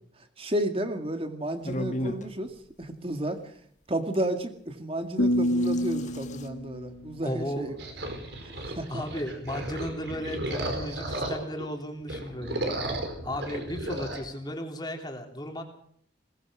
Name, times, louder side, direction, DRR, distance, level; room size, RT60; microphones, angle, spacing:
voice 1, 0.4-3.4 3.9-7.7 8.7-9.0, right 1 dB, 30° right, 7 dB, 2.1 m, -32 dB
sound 1, 1.6-2.3 4.1-4.2 5.2-6.5, left 1 dB, 40° left, 1.7 m, -35 dB
sound 2, 5.2-8.1, equal, 90° left, 1.4 m, -29 dB
voice 2, 7.2-7.8 8.5-12.8 13.2-15.6, equal, 20° left, 3 dB, 3.2 m, -35 dB
sound 3, 7.8-11.7 12.0-14.2, right 1 dB, 65° right, 4.9 m, -34 dB
21.5 x 19.5 x 6.3 m, 0.65 s
head